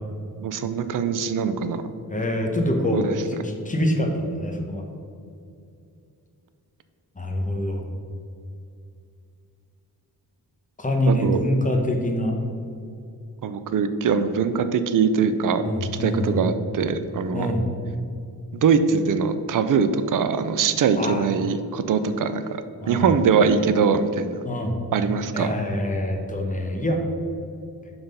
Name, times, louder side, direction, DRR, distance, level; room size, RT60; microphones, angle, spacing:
voice 1, 0.4-1.8 2.9-3.2 11.1-11.4 13.4-15.6 16.0-17.5 18.5-22.4 22.9-24.4 24.9-25.5, right 6 dB, 55° right, 10 dB, 0.5 m, -22 dB
voice 2, 2.1-3.1 3.4-4.8 7.2-7.9 10.8-12.4 15.6-16.3 17.3-17.7 21.0-21.2 22.8-23.1 24.4-24.8 25.3-27.0, left 1 dB, 20° left, 3 dB, 1.0 m, -25 dB
5.7 x 5.6 x 5.4 m, 2.5 s
wide cardioid pair, 120°, 38 cm